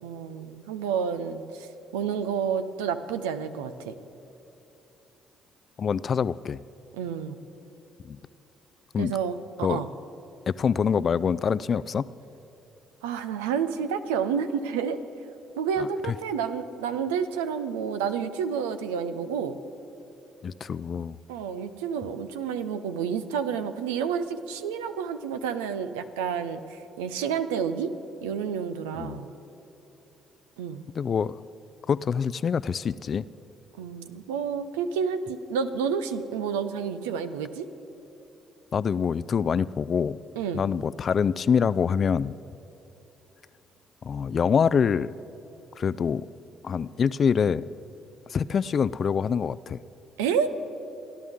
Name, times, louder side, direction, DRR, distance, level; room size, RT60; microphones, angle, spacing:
voice 1, 0.0-3.9 6.9-7.4 9.0-9.9 13.0-15.0 15.5-19.6 21.3-27.9 28.2-29.3 30.6-30.8 33.8-37.7 40.4-40.6 50.2-50.5, right 7 dB, 85° right, 10 dB, 0.6 m, -30 dB
voice 2, 5.8-6.6 8.0-8.2 8.9-9.1 9.6-9.8 10.5-12.1 16.1-16.2 20.4-21.2 29.0-29.2 30.9-31.4 31.9-33.2 38.7-40.2 40.5-42.4 44.0-45.1 45.8-46.3 46.6-47.7 48.3-49.8, left 6 dB, 50° left, 18 dB, 0.3 m, -25 dB
30.0 x 11.0 x 3.6 m, 3.0 s
hypercardioid pair, 50°, 0 cm